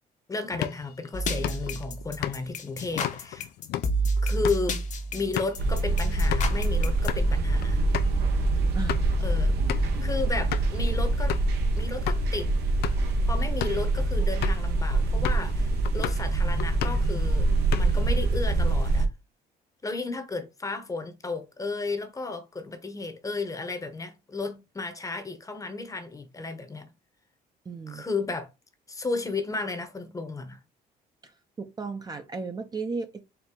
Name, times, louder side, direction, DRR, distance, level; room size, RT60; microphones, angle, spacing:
voice 1, 0.3-3.5 4.2-4.8 5.1-7.8 9.2-11.4 11.8-12.5 13.2-19.1 19.8-26.9 27.9-28.5 28.9-30.6, left 3 dB, 20° left, 0.9 m, -33 dB
sound 1, 0.5-6.6 6.9-7.3 7.6-7.7 7.9-8.1 8.6-9.2 9.7-10.0 10.5-10.8 11.3-11.6 12.1-12.2 12.7-13.1 13.5-13.9 14.4-14.7 15.2-15.5 15.8-16.3 16.6-17.1 17.5-18.1, left 12 dB, 70° left, 0.5 m, -34 dB
sound 2, 1.1-7.1, right 1 dB, 45° left, 0.9 m, -30 dB
sound 3, 5.6-19.1, right 2 dB, 80° right, 0.9 m, -25 dB
voice 2, 27.7-28.0 31.2-33.2, right 4 dB, 25° right, 0.6 m, -35 dB
4.5 x 2.6 x 3.7 m
cardioid pair, 110°, 17 cm